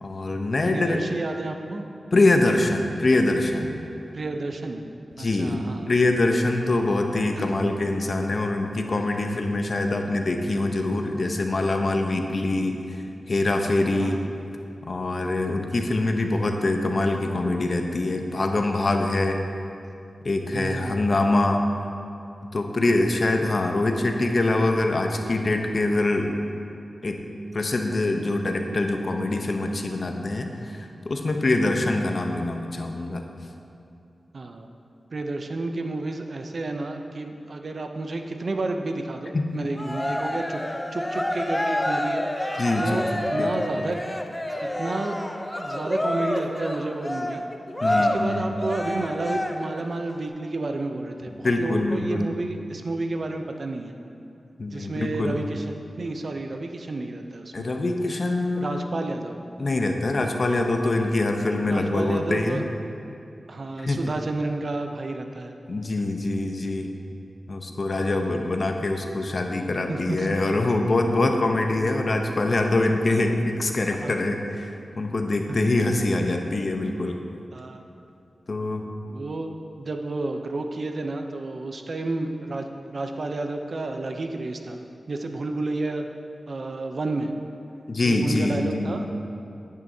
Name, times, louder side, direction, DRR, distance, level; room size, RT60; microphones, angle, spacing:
voice 1, 0.0-1.0 2.1-3.8 5.2-12.8 13.3-14.2 14.9-19.4 20.2-21.6 22.5-26.3 27.0-27.2 27.5-33.2 39.3-39.5 42.6-43.6 47.8-48.4 51.3-52.3 54.6-55.4 57.5-58.9 59.6-62.6 63.8-64.0 65.7-66.9 67.5-74.7 75.0-77.2 78.5-78.9 87.9-89.0, left 2 dB, 50° left, 4 dB, 0.8 m, -24 dB
voice 2, 0.7-1.9 4.1-4.8 5.2-5.9 7.4-7.5 13.9-14.2 20.5-21.0 23.4-23.6 34.3-34.7 35.1-40.6 40.9-42.3 42.8-44.0 44.6-45.3 45.6-47.4 48.0-53.9 54.7-55.6 56.0-57.7 58.6-59.4 61.6-62.6 63.5-65.5 68.1-68.3 69.9-70.3 74.0-74.3 75.5-75.6 77.5-77.8 79.1-79.5 79.8-84.8 85.1-86.0 86.5-87.3 88.0-89.1, right 2 dB, 60° right, 5 dB, 0.6 m, -31 dB
Cheering, 39.8-49.8, left 1 dB, 15° left, 0.6 m, -28 dB
10.5 x 9.3 x 2.8 m, 2.6 s
wide cardioid pair, 70°, 0 cm